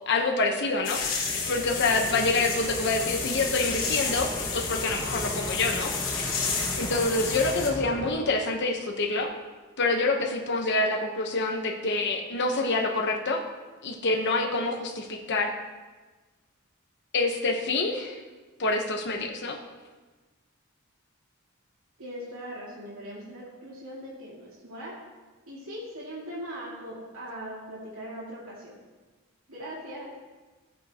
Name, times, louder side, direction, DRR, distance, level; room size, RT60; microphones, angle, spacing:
voice 1, 0.1-1.0 1.5-5.9 6.7-9.3 9.8-13.4 13.8-15.5 17.1-18.2 18.6-19.6, left 3 dB, 55° left, 2 dB, 1.1 m, -26 dB
sound 1, 0.8-7.7, left 5 dB, 75° left, 2.9 m, -31 dB
sound 2, 1.2-8.1, equal, 5° left, 1.3 m, -37 dB
voice 2, 22.0-25.0 25.5-28.8 29.5-30.1, equal, 80° right, -6 dB, 2.5 m, -40 dB
15.0 x 8.9 x 3.0 m, 1.3 s
head